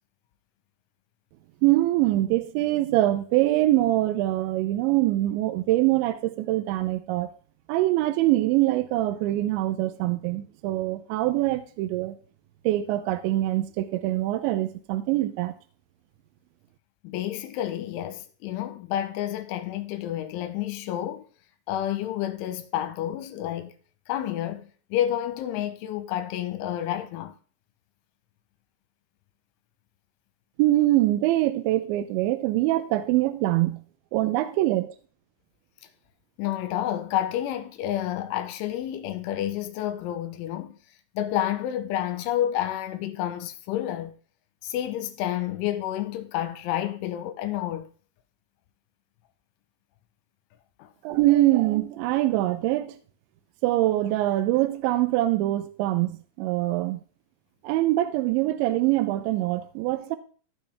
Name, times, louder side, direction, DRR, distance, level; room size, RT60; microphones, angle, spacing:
voice 1, 1.6-7.3 7.7-12.1 12.6-15.5 30.6-33.8 34.1-34.9 51.0-53.0 53.6-57.0 57.6-60.2, right 16 dB, 85° right, 2.7 m, -24 dB
voice 2, 17.0-21.2 21.7-23.7 24.1-27.3 36.4-40.7 41.2-44.1 44.6-47.9 50.8-50.9, left 12 dB, 85° left, 3.1 m, -29 dB
15.0 x 5.5 x 3.4 m
omnidirectional pair, 5.7 m